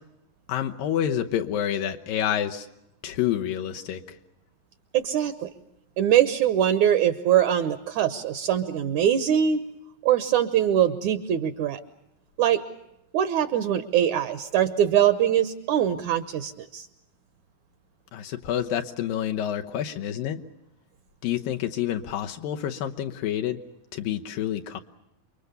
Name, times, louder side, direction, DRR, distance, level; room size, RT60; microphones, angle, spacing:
voice 1, 0.5-2.7 3.0-4.2 18.1-20.4 21.2-23.6 23.9-24.8, left 10 dB, 80° left, 4 dB, 2.8 m, -28 dB
voice 2, 4.9-5.5 6.0-9.6 10.0-11.8 12.4-12.6 13.1-16.9, right 10 dB, 65° right, 11 dB, 2.2 m, -22 dB
28.5 x 24.0 x 6.8 m, 0.84 s
omnidirectional pair, 4.0 m